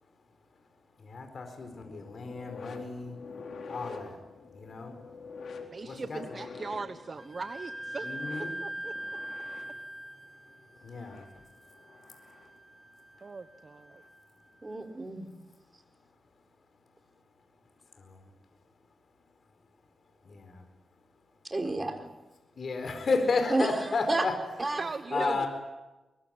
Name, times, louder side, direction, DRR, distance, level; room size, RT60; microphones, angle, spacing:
voice 1, 1.0-3.2 3.7-4.2 4.5-4.9 5.8-6.4 8.0-8.5 10.8-11.2 18.0-18.2 20.2-20.6 22.6-24.4 24.7-24.8 25.1-25.5, left 3 dB, 60° left, 6 dB, 4.6 m, -32 dB
sound 1, 1.6-12.6 13.9-14.1 15.0-15.1, left 4 dB, 80° left, 4.1 m, -47 dB
voice 2, 5.7-8.1 8.4-8.9 13.2-14.0 24.8-25.4, right 4 dB, 45° right, 10 dB, 1.1 m, -39 dB
Wind instrument woodwind instrument, 7.2-14.6, right 1 dB, 10° right, 1.9 m, -43 dB
voice 3, 14.6-15.3 21.4-22.0 23.5-23.8 24.1-24.3 24.6-24.8 25.1-25.5, right 2 dB, 25° right, 5 dB, 4.4 m, -31 dB
23.5 x 23.0 x 9.0 m, 1.1 s
cardioid pair, 85°, 0 cm